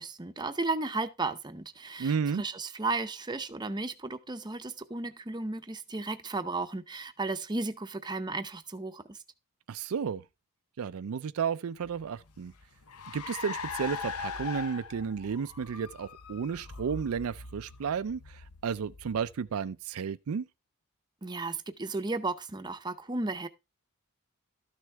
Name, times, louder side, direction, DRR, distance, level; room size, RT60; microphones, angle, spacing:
voice 1, 0.0-9.2 21.2-23.5, right 3 dB, 20° right, 0.7 m, -34 dB
voice 2, 2.0-2.4 9.7-10.2 10.8-12.5 13.1-20.5, right 6 dB, 70° right, 0.4 m, -33 dB
Car, 11.8-19.6, left 5 dB, 80° left, 0.8 m, -41 dB
12.5 x 6.3 x 3.4 m
head